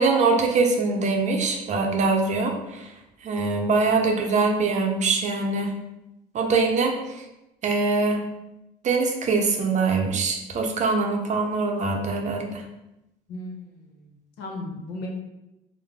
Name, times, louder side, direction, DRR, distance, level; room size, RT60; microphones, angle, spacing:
voice 1, 0.0-2.9 3.2-5.7 6.3-6.9 7.6-8.2 8.8-12.6, right 3 dB, 45° right, 2 dB, 0.6 m, -23 dB
voice 2, 13.3-15.1, left 2 dB, 85° left, 0 dB, 0.9 m, -37 dB
3.7 x 2.1 x 3.5 m, 0.91 s
cardioid pair, 110°, 17 cm